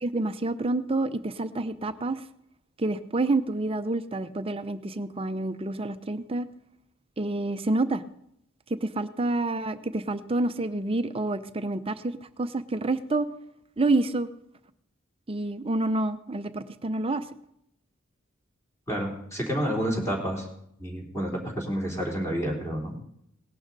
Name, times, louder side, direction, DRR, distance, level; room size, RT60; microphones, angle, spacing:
voice 1, 0.0-2.2 2.8-6.5 7.2-8.0 8.7-13.3 13.8-14.3 15.3-17.2, right 2 dB, 25° right, 11 dB, 0.6 m, -28 dB
voice 2, 18.9-20.5 20.8-23.0, equal, 15° left, -1 dB, 3.2 m, -29 dB
18.0 x 11.5 x 4.0 m, 0.75 s
head